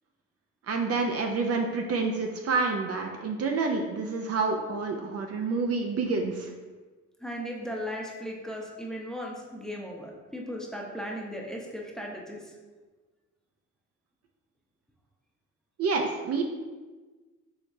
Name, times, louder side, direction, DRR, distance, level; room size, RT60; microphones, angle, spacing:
voice 1, 0.7-6.5 15.8-16.4, right 4 dB, 55° right, 3 dB, 0.5 m, -28 dB
voice 2, 7.2-12.5, equal, ahead, -2 dB, 0.7 m, -37 dB
4.8 x 3.2 x 2.6 m, 1.3 s
cardioid pair, 90°, 30 cm